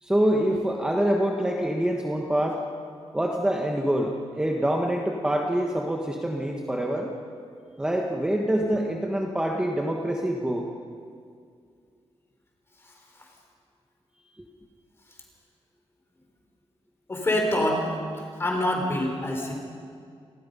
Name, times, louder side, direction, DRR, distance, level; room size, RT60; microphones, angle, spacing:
voice 1, 0.0-2.6 3.1-7.2 7.8-10.6, right 1 dB, 5° right, 0 dB, 1.3 m, -25 dB
voice 2, 17.1-17.9 18.1-19.5, left 1 dB, 25° left, 1 dB, 3.9 m, -26 dB
29.0 x 20.0 x 5.5 m, 2.2 s
wide cardioid pair, 180°, 11 cm